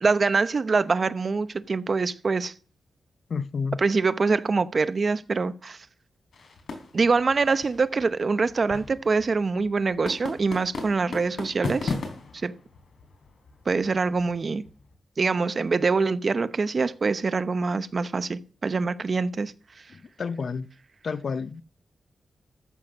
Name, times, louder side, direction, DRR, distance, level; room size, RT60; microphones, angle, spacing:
voice 1, 0.0-2.5 3.8-5.8 6.9-11.9 12.4-12.5 13.7-14.7 15.2-19.5, right 4 dB, 40° right, 0.8 m, -24 dB
voice 2, 3.3-3.8 19.9-20.7 21.0-21.6, left 5 dB, 55° left, 0.7 m, -30 dB
sound 1, 6.3-14.9, left 4 dB, 75° left, 3.5 m, -38 dB
14.0 x 7.7 x 6.4 m
wide cardioid pair, 130°, 0 cm